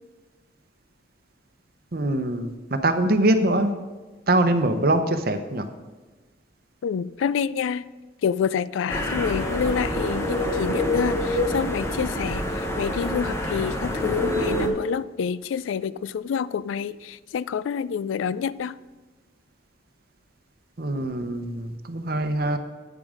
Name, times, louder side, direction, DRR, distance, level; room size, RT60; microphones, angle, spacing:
voice 1, 1.9-2.5 2.8-3.7 4.3-5.7 20.8-22.6, right 1 dB, 50° right, 9 dB, 0.8 m, -23 dB
voice 2, 6.8-7.9 8.2-18.7, left 7 dB, 80° left, 18 dB, 0.3 m, -28 dB
sound 1, 8.9-14.7, left 1 dB, 15° left, 1.0 m, -26 dB
9.3 x 7.3 x 5.0 m, 1.3 s
head